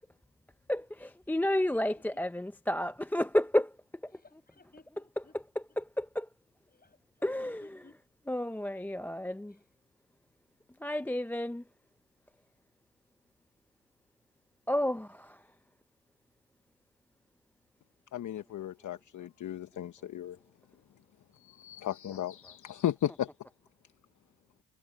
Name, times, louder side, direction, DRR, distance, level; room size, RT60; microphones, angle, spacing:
voice 1, 0.7-3.7 5.8-6.2 7.2-7.7 8.3-9.5 10.8-11.6 14.7-15.1, left 1 dB, 5° left, 0.5 m, -31 dB
voice 2, 1.3-2.3 4.1-5.4 6.7-8.0 9.5-9.6, left 3 dB, 25° left, 7.0 m, -61 dB
voice 3, 18.1-20.4 21.6-23.3, left 11 dB, 55° left, 0.9 m, -35 dB
cardioid pair, 90°, 36 cm